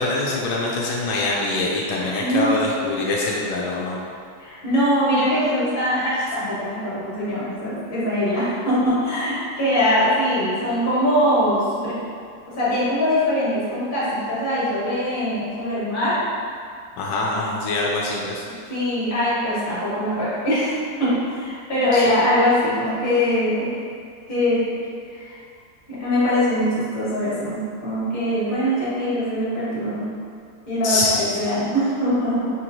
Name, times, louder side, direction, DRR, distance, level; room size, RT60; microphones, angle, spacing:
voice 1, 0.0-4.0 17.0-18.4 21.9-22.0 30.8-31.3, left 2 dB, 85° left, -3 dB, 1.2 m, -24 dB
voice 2, 2.0-2.6 4.4-12.0 12.6-16.2 18.7-20.7 21.0-23.8 24.3-24.7 25.1-25.4 25.9-30.1 30.7-32.5, equal, 30° left, -10 dB, 1.3 m, -22 dB
4.9 x 3.0 x 2.6 m, 2.2 s
omnidirectional pair, 1.9 m